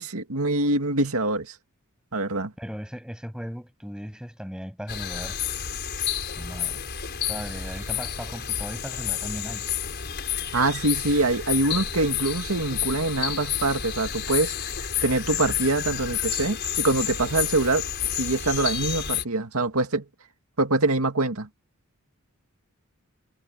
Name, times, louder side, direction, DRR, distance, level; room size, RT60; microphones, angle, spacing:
voice 1, 0.0-1.5 2.1-2.5 10.5-14.5 15.0-17.8 18.2-20.0 20.6-21.5, right 2 dB, 85° right, 2.2 m, -24 dB
voice 2, 2.6-5.4 6.4-6.8 7.3-9.7, equal, 5° right, 7.6 m, -37 dB
sound 1, 4.9-19.2, left 9 dB, 50° left, 5.3 m, -30 dB
head